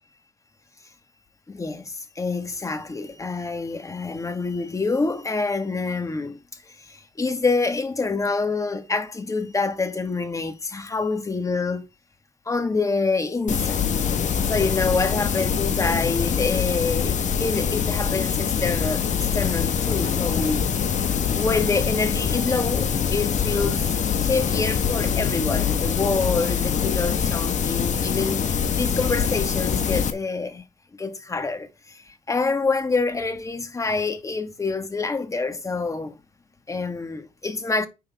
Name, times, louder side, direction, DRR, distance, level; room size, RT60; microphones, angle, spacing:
voice 1, 1.5-6.4 6.8-11.9 12.5-13.8 14.4-20.7 21.4-30.6 31.0-36.2 36.7-37.9, left 3 dB, 20° left, 1.9 m, -26 dB
sound 1, 13.5-30.1, left 7 dB, 45° left, 1.6 m, -24 dB
10.5 x 6.4 x 3.7 m
cardioid pair, 110°, 17 cm